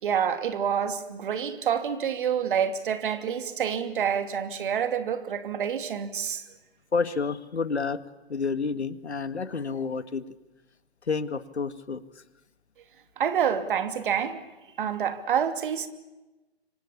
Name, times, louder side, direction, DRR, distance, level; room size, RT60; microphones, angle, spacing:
voice 1, 0.0-6.4 13.2-14.4 14.8-15.9, right 8 dB, 50° right, 2.7 m, -27 dB
voice 2, 6.9-8.0 8.3-10.2 11.1-12.0, left 5 dB, 80° left, 1.9 m, -29 dB
27.0 x 24.5 x 8.5 m
figure-of-eight pair, 135°, 32 cm